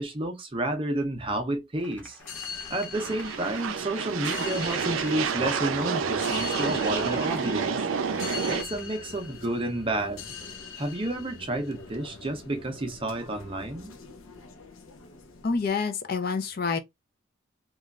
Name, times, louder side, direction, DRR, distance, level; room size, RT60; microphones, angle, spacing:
voice 1, 0.0-2.2 2.5-7.8 8.4-10.3 10.8-13.9, right 1 dB, 25° right, 0.5 m, -30 dB
sound 1, 1.7-9.0, left 1 dB, 5° left, 0.8 m, -52 dB
sound 2, 2.2-15.7, left 6 dB, 85° left, 0.7 m, -42 dB
sound 3, 2.9-8.6, right 6 dB, 75° right, 0.4 m, -29 dB
voice 2, 15.4-16.8, left 4 dB, 45° left, 0.4 m, -27 dB
3.0 x 2.3 x 2.3 m
head